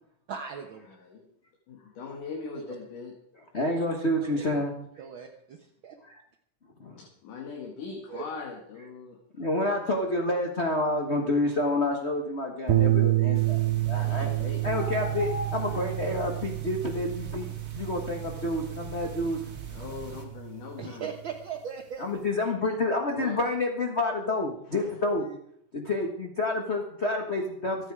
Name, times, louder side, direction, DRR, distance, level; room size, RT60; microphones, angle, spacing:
voice 1, 0.3-0.9 2.5-2.6 4.2-4.6 5.0-6.0 8.1-8.2 19.0-19.1 20.8-22.2 24.8-24.9 25.2-25.4, right 7 dB, 70° right, 4 dB, 1.2 m, -39 dB
voice 2, 0.9-1.3 1.7-3.5 7.0-9.2 14.0-15.2 19.7-21.1 23.1-23.4 24.7-25.0, left 5 dB, 80° left, 0 dB, 3.5 m, -41 dB
voice 3, 3.5-4.7 6.0-6.2 6.8-7.0 9.4-13.6 13.9-14.3 14.6-19.5 22.0-25.3 25.7-27.9, left 2 dB, 50° left, 2 dB, 0.7 m, -29 dB
sound 1, 12.7-21.1, right 15 dB, 90° right, 2.4 m, -29 dB
sound 2, 13.3-20.2, right 2 dB, 30° right, 1.8 m, -42 dB
24.5 x 8.9 x 4.8 m, 0.70 s
omnidirectional pair, 3.6 m